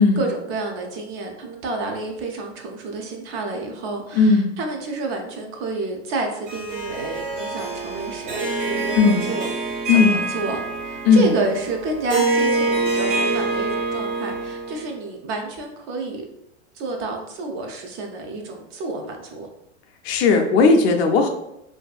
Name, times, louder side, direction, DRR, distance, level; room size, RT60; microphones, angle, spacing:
voice 1, 0.0-9.5 9.9-10.0 10.3-16.2 16.7-19.5, right 3 dB, 35° right, 2 dB, 0.4 m, -29 dB
voice 2, 4.1-4.5 8.9-9.2 9.9-10.2 11.0-11.3 20.0-21.3, left 4 dB, 60° left, 4 dB, 0.5 m, -16 dB
Harp, 6.5-14.9, right 3 dB, 75° right, 1.3 m, -25 dB
2.6 x 2.2 x 2.3 m, 0.85 s
hypercardioid pair, 105°, 36 cm